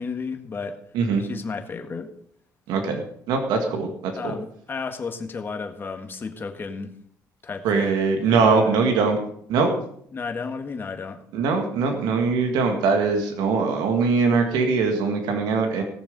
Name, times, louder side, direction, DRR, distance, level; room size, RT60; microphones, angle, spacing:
voice 1, 0.0-0.8 1.2-2.1 4.2-6.9 7.4-7.9 8.3-8.8 10.1-11.2, left 4 dB, 30° left, 5 dB, 1.7 m, -33 dB
voice 2, 2.7-4.4 7.6-9.2 9.5-9.7 11.3-15.8, right 4 dB, 90° right, 4 dB, 2.0 m, -22 dB
18.0 x 6.9 x 5.4 m, 0.64 s
cardioid pair, 120°, 7 cm